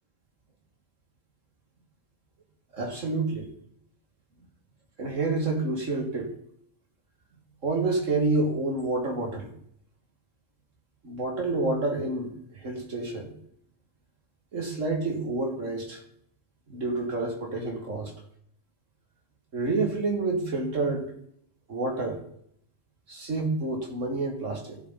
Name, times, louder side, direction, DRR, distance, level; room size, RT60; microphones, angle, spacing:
voice 1, 2.7-3.5 5.0-6.3 7.6-9.5 11.0-13.3 14.5-16.0 16.7-18.1 19.5-21.1 21.7-22.2 23.1-24.8, right 2 dB, 80° right, 2 dB, 2.7 m, -28 dB
15.5 x 7.8 x 4.1 m, 0.69 s
omnidirectional pair, 1.3 m